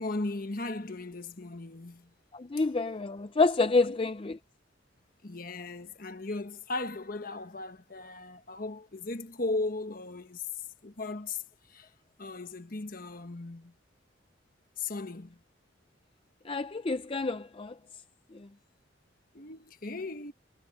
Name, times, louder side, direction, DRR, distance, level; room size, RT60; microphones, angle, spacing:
voice 1, 0.0-2.1 3.8-3.9 5.2-10.4 10.8-11.4 11.7-11.9 12.2-13.7 14.8-15.4 19.3-20.3, left 2 dB, 45° left, 1.4 m, -37 dB
voice 2, 2.3-4.4 16.4-17.7 18.3-18.5, left 3 dB, 30° left, 0.5 m, -28 dB
head